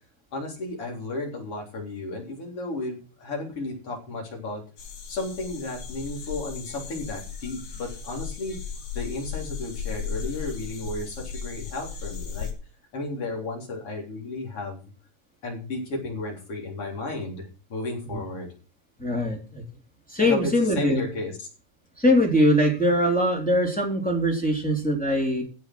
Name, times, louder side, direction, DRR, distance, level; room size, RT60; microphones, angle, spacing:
voice 1, 0.3-4.6 5.1-8.5 8.9-12.5 12.9-14.8 15.4-18.5 20.2-21.5, left 2 dB, 50° left, 0 dB, 4.8 m, -33 dB
sound 1, 4.8-12.5, left 6 dB, 75° left, 4.7 m, -36 dB
voice 2, 19.0-19.6 20.1-21.0 22.0-25.4, equal, 5° left, 0 dB, 3.3 m, -22 dB
15.5 x 6.2 x 6.2 m, 0.34 s
omnidirectional pair, 3.4 m